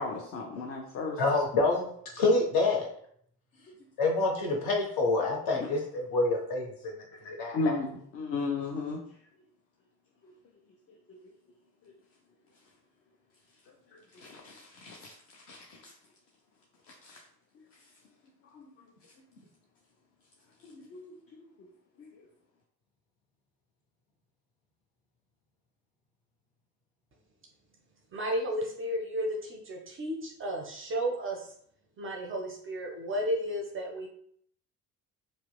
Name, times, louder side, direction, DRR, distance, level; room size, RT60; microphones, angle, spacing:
voice 1, 0.0-1.2 3.7-3.8 5.6-5.7 7.2-9.0 10.2-10.3 11.1-11.2 13.9-15.9 17.0-17.2 18.5-18.7 20.6-21.7 22.0-22.1, left 3 dB, 35° left, -1 dB, 0.4 m, -36 dB
voice 2, 1.2-1.9 2.1-2.9 4.0-6.7 7.2-7.6, left 3 dB, 50° left, -1 dB, 0.9 m, -27 dB
voice 3, 28.1-31.5 32.0-34.1, equal, 30° right, 1 dB, 0.4 m, -33 dB
2.7 x 2.1 x 2.3 m, 0.65 s
figure-of-eight pair, 50°, 47 cm